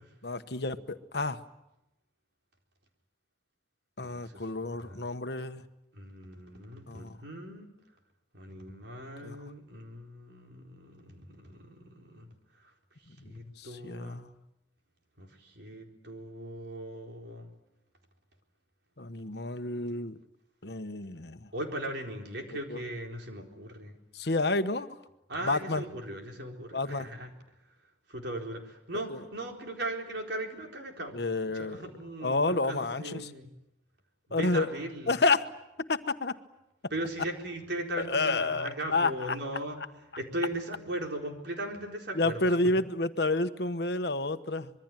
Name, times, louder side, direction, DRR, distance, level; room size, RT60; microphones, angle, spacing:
voice 1, 0.2-1.4 4.0-5.6 6.9-7.1 9.2-9.4 13.6-14.3 19.0-20.2 20.6-21.5 22.7-22.8 24.1-24.9 25.4-25.8 26.7-27.1 29.1-29.2 31.1-31.8 32.2-33.3 34.3-34.7 35.1-35.5 35.9-36.3 38.1-39.4 42.1-44.7, left 3 dB, 60° left, 9 dB, 1.2 m, -29 dB
voice 2, 4.0-5.1 5.9-7.7 8.3-12.3 13.2-14.2 15.2-17.5 21.5-23.9 25.3-27.3 28.1-33.5 34.3-35.1 36.9-39.8 40.2-42.5, right 1 dB, 65° right, 2 dB, 4.2 m, -38 dB
26.0 x 22.5 x 9.1 m, 0.90 s
head